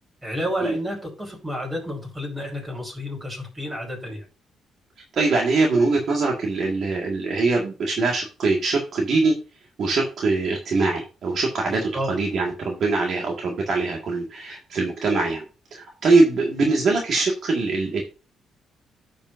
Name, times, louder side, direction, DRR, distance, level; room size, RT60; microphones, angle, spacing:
voice 1, 0.2-4.3 11.7-12.1, equal, 15° right, -1 dB, 5.2 m, -30 dB
voice 2, 5.1-9.3 9.8-15.4 15.7-18.0, right 3 dB, 60° right, 0 dB, 1.9 m, -22 dB
13.0 x 5.4 x 2.7 m, 0.32 s
cardioid pair, 90°, 0 cm